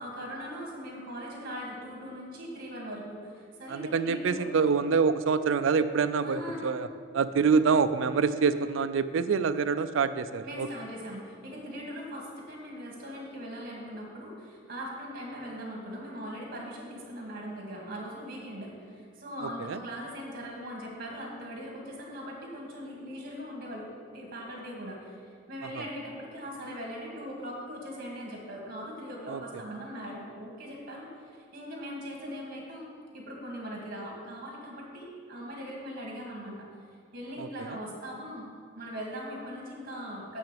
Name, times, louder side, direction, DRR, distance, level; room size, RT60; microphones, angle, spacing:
voice 1, 0.0-4.5 6.2-6.7 10.4-25.2 25.5-32.9 33.1-36.7 37.1-38.5 38.8-40.4, equal, 50° right, -1 dB, 2.1 m, -40 dB
voice 2, 3.7-6.9 7.1-10.7 19.7-19.8 29.3-29.4 37.4-37.5, right 5 dB, 80° right, 13 dB, 0.4 m, -26 dB
7.0 x 6.0 x 7.4 m, 2.1 s
head